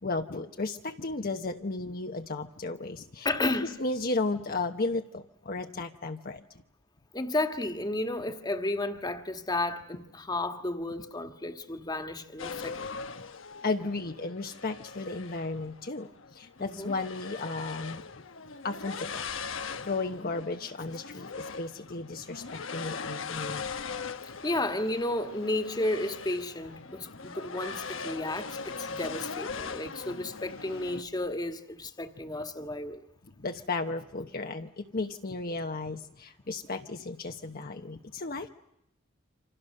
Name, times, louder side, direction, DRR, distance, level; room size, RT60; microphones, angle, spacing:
voice 1, 0.0-3.3 3.8-6.4 13.6-18.0 18.6-19.2 19.8-23.6 33.2-38.5, left 3 dB, 50° left, 1.0 m, -34 dB
voice 2, 3.2-3.8 7.1-12.9 16.6-16.9 20.2-20.3 24.4-33.0, left 2 dB, 20° left, 1.6 m, -32 dB
sound 1, 12.4-31.0, left 5 dB, 80° left, 1.1 m, -40 dB
28.0 x 26.5 x 6.6 m
head